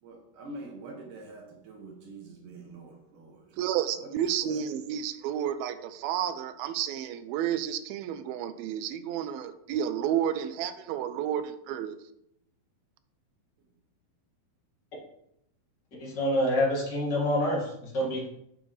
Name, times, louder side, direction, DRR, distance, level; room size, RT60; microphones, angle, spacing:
voice 1, 0.0-3.7 4.0-4.1 4.5-4.8, right 2 dB, 65° right, 2.5 m, -45 dB
voice 2, 3.6-12.0, right 10 dB, 90° right, 2.5 m, -31 dB
voice 3, 16.0-18.3, left 1 dB, 35° left, 2.6 m, -27 dB
9.9 x 7.0 x 3.4 m
omnidirectional pair, 4.2 m